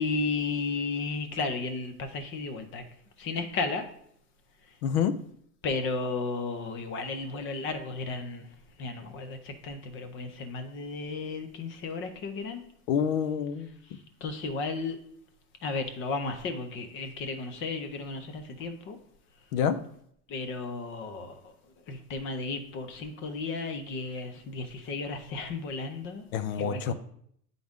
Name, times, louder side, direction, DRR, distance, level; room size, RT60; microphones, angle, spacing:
voice 1, 0.0-2.8 3.2-3.9 5.6-8.5 8.8-12.6 13.9-15.0 15.6-19.0 20.3-21.5 21.9-26.2 26.5-26.9, left 3 dB, 25° left, 0.6 m, -34 dB
voice 2, 4.8-5.1 12.9-13.7 19.5-19.8 26.3-26.9, left 7 dB, 60° left, 0.7 m, -27 dB
9.1 x 3.9 x 3.5 m
supercardioid pair, 150°, 48 cm